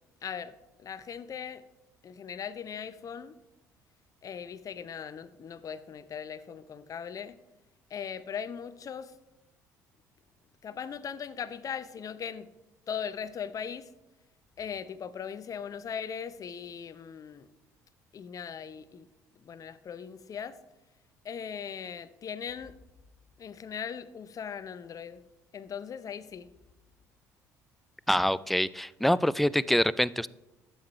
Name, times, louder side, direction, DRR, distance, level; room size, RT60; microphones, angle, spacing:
voice 1, 0.2-0.6 0.8-1.6 2.0-3.3 4.2-7.4 7.9-9.1 10.6-12.5 12.9-13.9 14.6-17.5 18.1-19.1 19.4-20.6 21.2-22.7 23.4-25.2 25.5-26.5, left 7 dB, 40° left, 14 dB, 0.6 m, -39 dB
voice 2, 28.1-30.3, equal, ahead, 19 dB, 0.3 m, -25 dB
12.0 x 7.8 x 3.1 m, 1.0 s
hypercardioid pair, 55°, 9 cm